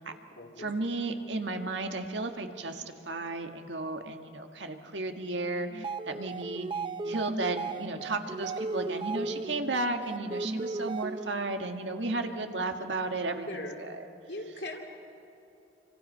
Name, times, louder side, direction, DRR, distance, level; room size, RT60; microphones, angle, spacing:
voice 1, 0.0-0.7 13.5-13.7 14.3-14.8, left 2 dB, 70° left, 2 dB, 2.8 m, -40 dB
voice 2, 0.6-6.7 7.1-14.0, right 2 dB, 90° right, 5 dB, 1.8 m, -34 dB
sound 1, 5.7-11.5, right 3 dB, 30° right, 0.6 m, -36 dB
28.5 x 25.0 x 5.6 m, 3.0 s
head